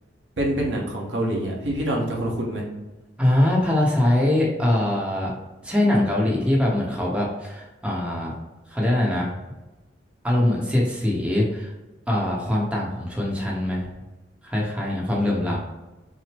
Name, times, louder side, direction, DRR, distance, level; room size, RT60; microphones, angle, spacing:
voice 1, 0.4-2.6, right 1 dB, 80° right, -1 dB, 1.0 m, -26 dB
voice 2, 3.2-5.3 5.6-8.3 8.7-9.3 10.2-11.7 12.1-13.9 14.4-15.6, left 1 dB, 5° right, -3 dB, 0.8 m, -22 dB
5.8 x 2.0 x 3.4 m, 1.1 s
head